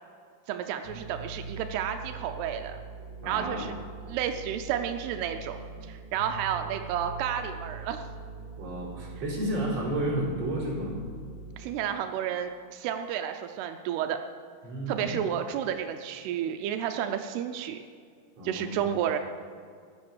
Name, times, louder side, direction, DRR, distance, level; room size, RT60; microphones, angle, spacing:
voice 1, 0.5-2.8 3.3-3.8 4.1-5.6 5.9-8.1 11.6-14.2 14.9-17.8 18.4-19.2, right 9 dB, 90° right, 6 dB, 2.7 m, -31 dB
sound 1, 0.8-11.7, right 3 dB, 60° left, 3.6 m, -42 dB
voice 2, 3.2-3.7 8.6-11.0 14.6-15.2 18.4-18.8, right 1 dB, 40° right, -6 dB, 5.4 m, -31 dB
15.5 x 10.0 x 7.2 m, 2.1 s
omnidirectional pair, 4.5 m